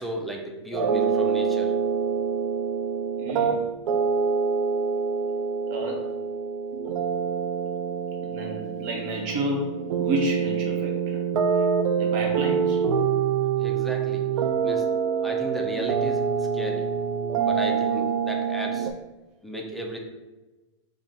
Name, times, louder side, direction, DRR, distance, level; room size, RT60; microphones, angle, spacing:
voice 1, 0.0-1.7 13.6-14.3 14.6-14.9 15.2-16.8 17.4-18.9 19.4-20.0, equal, ahead, 0 dB, 0.5 m, -34 dB
sound 1, 0.7-18.9, right 6 dB, 80° right, 0.4 m, -26 dB
voice 2, 3.2-3.6 5.7-6.1 8.2-11.2 11.5-11.6 12.0-12.9, right 1 dB, 50° right, 0 dB, 1.1 m, -31 dB
3.4 x 2.5 x 4.0 m, 1.1 s
hypercardioid pair, 130°, 16 cm